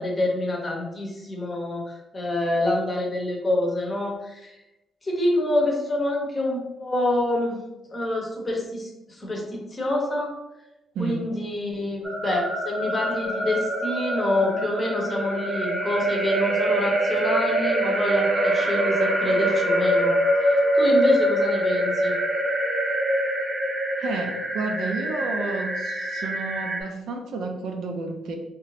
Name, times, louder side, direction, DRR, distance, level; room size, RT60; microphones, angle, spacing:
voice 1, 0.0-4.6 5.0-7.6 7.9-10.3 11.0-20.1 20.4-22.2, left 1 dB, 25° left, 0 dB, 0.8 m, -26 dB
sound 1, 12.0-26.8, right 1 dB, 25° right, 0.7 m, -24 dB
voice 2, 24.0-28.4, right 3 dB, 75° right, 3 dB, 0.5 m, -31 dB
3.0 x 2.5 x 3.2 m, 0.98 s
cardioid pair, 120°, 0 cm